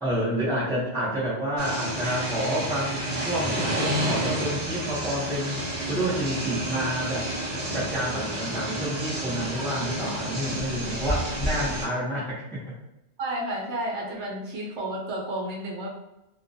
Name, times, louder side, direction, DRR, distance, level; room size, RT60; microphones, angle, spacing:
voice 1, 0.0-7.3 7.7-12.6, equal, 5° left, -7 dB, 0.4 m, -29 dB
sound 1, 1.6-11.9, right 1 dB, 45° right, 0.5 m, -30 dB
voice 2, 13.2-15.9, right 1 dB, 80° right, -2 dB, 0.9 m, -31 dB
2.2 x 2.1 x 2.6 m, 0.94 s
omnidirectional pair, 1.2 m